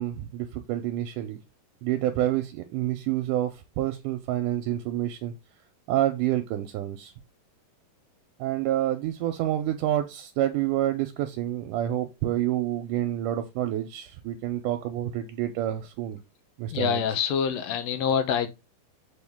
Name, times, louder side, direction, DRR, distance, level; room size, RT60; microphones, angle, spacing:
voice 1, 0.0-1.4 1.8-5.3 5.9-7.1 8.4-16.2 16.6-17.0, right 13 dB, 80° right, 2.0 m, -28 dB
voice 2, 16.7-18.5, left 7 dB, 85° left, 1.5 m, -26 dB
7.1 x 4.4 x 3.6 m
omnidirectional pair, 4.1 m